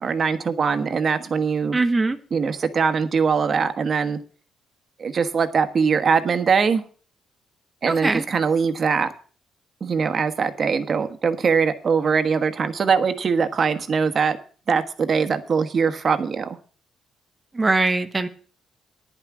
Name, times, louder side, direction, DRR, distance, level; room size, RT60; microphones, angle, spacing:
voice 1, 0.0-1.8 2.3-4.2 5.0-6.8 7.8-9.1 9.8-14.4 14.7-16.6, right 5 dB, 45° right, 9 dB, 1.2 m, -22 dB
voice 2, 1.7-2.2 7.9-8.2 17.5-18.3, right 3 dB, 20° right, 7 dB, 1.1 m, -21 dB
10.5 x 6.0 x 8.2 m, 0.42 s
cardioid pair, 105°, 0 cm